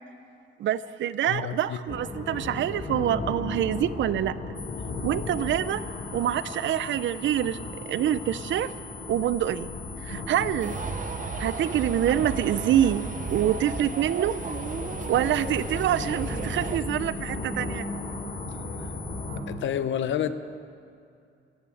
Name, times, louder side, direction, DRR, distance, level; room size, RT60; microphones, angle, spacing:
voice 1, 0.6-4.3 5.0-5.8 6.1-8.7 9.1-9.7 10.0-10.8 11.4-13.0 13.3-14.4 15.1-17.8, right 11 dB, 75° right, 16 dB, 0.5 m, -26 dB
voice 2, 1.3-1.8 19.5-20.3, left 9 dB, 75° left, 12 dB, 0.8 m, -28 dB
sound 1, 1.9-19.4, left 2 dB, 55° left, 2.9 m, -36 dB
sound 2, 4.6-19.3, left 7 dB, 5° left, 2.8 m, -45 dB
sound 3, 10.6-16.8, right 6 dB, 40° right, 0.7 m, -35 dB
14.0 x 11.0 x 8.4 m, 2.5 s
cardioid pair, 135°, 20 cm